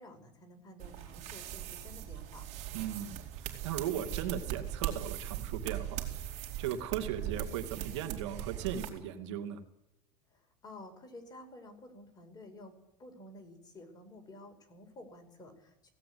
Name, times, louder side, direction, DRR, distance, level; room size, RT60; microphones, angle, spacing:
voice 1, 0.0-2.4 10.3-15.9, left 1 dB, 25° left, 5 dB, 4.9 m, -52 dB
sound 1, 0.8-8.9, right 11 dB, 50° right, 4.2 m, -40 dB
voice 2, 2.7-6.1 6.6-9.6, right 10 dB, 80° right, 6 dB, 2.5 m, -37 dB
17.5 x 16.5 x 9.6 m, 0.93 s
supercardioid pair, 120°, 15 cm